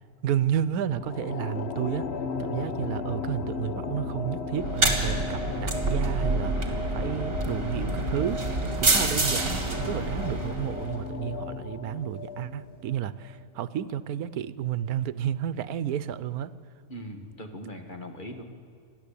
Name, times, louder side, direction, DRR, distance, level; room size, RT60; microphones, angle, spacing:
voice 1, 0.2-2.1 2.4-8.4 8.8-16.5, right 10 dB, 85° right, 16 dB, 1.2 m, -31 dB
sound 1, 0.9-13.4, left 4 dB, 50° left, 1.1 m, -35 dB
sound 2, 4.6-11.0, right 2 dB, 40° right, 2.5 m, -28 dB
voice 2, 16.9-18.4, equal, 35° left, 5 dB, 1.9 m, -40 dB
28.5 x 11.0 x 8.5 m, 2.4 s
omnidirectional pair, 1.5 m